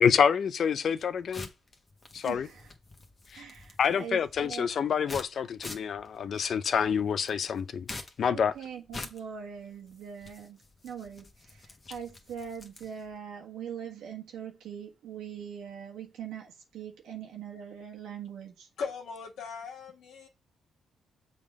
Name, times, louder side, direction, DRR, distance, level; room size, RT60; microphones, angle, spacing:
voice 1, 0.0-1.5 2.1-2.5 3.3-3.4 3.8-7.9 8.2-8.5, left 7 dB, 55° left, 0.5 m, -27 dB
sound 1, 0.9-13.1, left 2 dB, 30° left, 1.2 m, -47 dB
voice 2, 2.2-2.7 3.3-4.7 8.2-18.7, right 8 dB, 90° right, 1.5 m, -42 dB
voice 3, 18.8-20.3, left 5 dB, 80° left, 1.5 m, -38 dB
7.0 x 3.7 x 4.8 m
cardioid pair, 105°, 0 cm